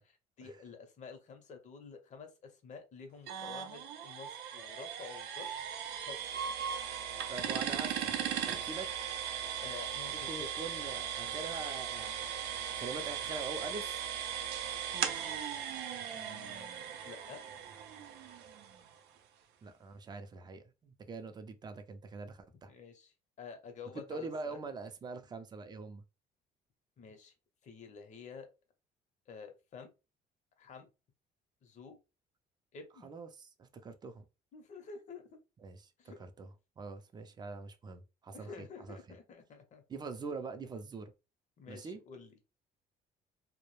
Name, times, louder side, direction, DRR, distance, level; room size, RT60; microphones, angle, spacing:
voice 1, 0.0-5.5 6.0-6.4 6.9-7.7 9.3-10.5 16.1-17.4 22.7-24.6 27.0-27.3 27.6-28.5 29.3-29.9 30.6-30.9 31.6-32.0 32.7-33.1 34.5-35.4 36.0-36.2 38.3-39.8 41.6-42.3, left 5 dB, 45° left, 0.7 m, -50 dB
sound 1, 3.3-18.9, right 9 dB, 80° right, 0.5 m, -38 dB
voice 2, 7.3-8.2 8.4-8.9 10.3-14.1 19.6-22.7 23.9-26.0 33.0-34.2 35.6-36.5 36.8-39.0 39.9-41.1 41.7-42.0, right 3 dB, 25° right, 0.4 m, -44 dB
2.2 x 2.0 x 3.1 m
cardioid pair, 110°, 17 cm